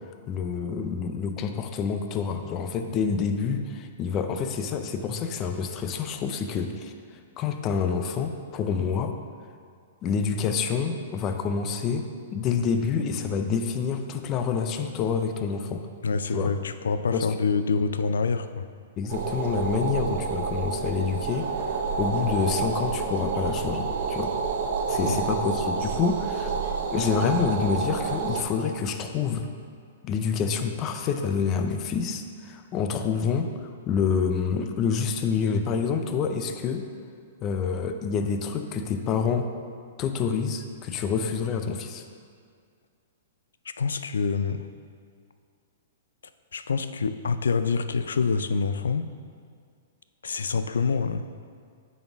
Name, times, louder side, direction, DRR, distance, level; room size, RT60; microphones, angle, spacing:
voice 1, 0.3-6.9 7.4-9.2 10.0-12.1 12.3-15.8 16.3-16.5 17.1-17.3 19.0-21.5 22.0-24.3 24.9-26.5 26.9-29.5 30.0-36.9 37.4-39.5 40.0-42.0, left 6 dB, 30° left, 7 dB, 0.5 m, -27 dB
voice 2, 16.0-18.7 25.0-25.2 43.8-44.7 46.5-49.1 50.2-51.2, left 5 dB, 90° left, 11 dB, 0.3 m, -26 dB
sound 1, 19.1-28.4, right 5 dB, 60° right, 0.7 m, -29 dB
8.7 x 4.2 x 3.5 m, 2.2 s
hypercardioid pair, 140°, 0 cm